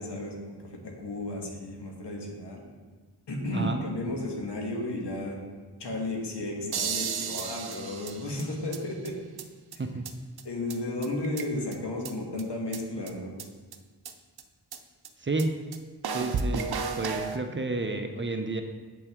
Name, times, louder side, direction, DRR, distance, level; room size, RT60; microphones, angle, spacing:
voice 1, 0.0-2.7 3.3-5.4 5.8-9.1 9.7-9.8 10.4-13.4, left 1 dB, 90° left, 0 dB, 1.5 m, -33 dB
sound 1, 6.7-8.8 9.0-9.1 9.4-9.5 9.7-9.8 10.0-10.1 10.4-10.5 10.7-10.8 11.0-11.7 12.0-12.1 12.4-12.5 12.7-12.8 13.1-13.2 13.4-13.5 13.7-13.8 14.0-14.1 14.4-14.5 14.7-14.8 15.0-15.1 15.4-15.5 15.7-15.8 16.0-17.4, right 5 dB, 70° right, 0.6 m, -33 dB
voice 2, 15.2-15.5 16.1-16.7 17.0-18.6, right 2 dB, 30° right, 6 dB, 0.6 m, -30 dB
7.8 x 5.5 x 3.6 m, 1.4 s
wide cardioid pair, 75°, 40 cm